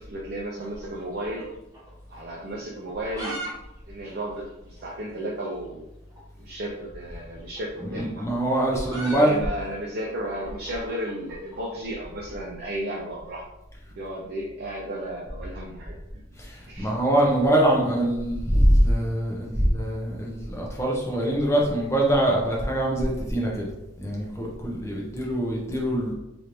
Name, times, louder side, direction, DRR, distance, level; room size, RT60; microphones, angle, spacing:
voice 1, 0.0-1.5 2.1-3.5 3.9-5.8 6.4-8.4 9.0-13.4 13.9-16.2 16.7-16.9 24.9-25.0, right 1 dB, 50° right, -3 dB, 0.5 m, -34 dB
sound 1, 0.6-1.9 2.2-2.3 2.8-3.5 3.8-3.9 4.1-4.2 4.8-4.9 6.1-6.3 7.4-11.6, right 1 dB, 15° right, 0.8 m, -39 dB
voice 2, 8.0-9.4 16.4-23.7 24.0-26.1, right 1 dB, 15° left, -2 dB, 0.6 m, -23 dB
3.2 x 2.5 x 3.0 m, 0.91 s
head